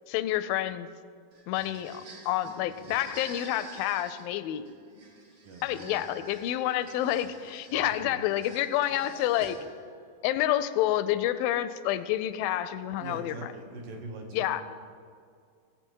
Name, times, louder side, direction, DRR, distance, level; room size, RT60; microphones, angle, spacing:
voice 1, 0.1-0.9 1.5-4.7 5.6-9.6 10.2-13.5 14.3-14.6, left 13 dB, 85° left, 13 dB, 2.3 m, -29 dB
sound 1, 1.3-9.9, right 2 dB, 40° right, 1.8 m, -49 dB
voice 2, 5.4-6.0 7.7-8.2 13.0-14.6, right 3 dB, 70° right, 2 dB, 2.8 m, -42 dB
17.5 x 8.4 x 4.6 m, 2.2 s
omnidirectional pair, 4.1 m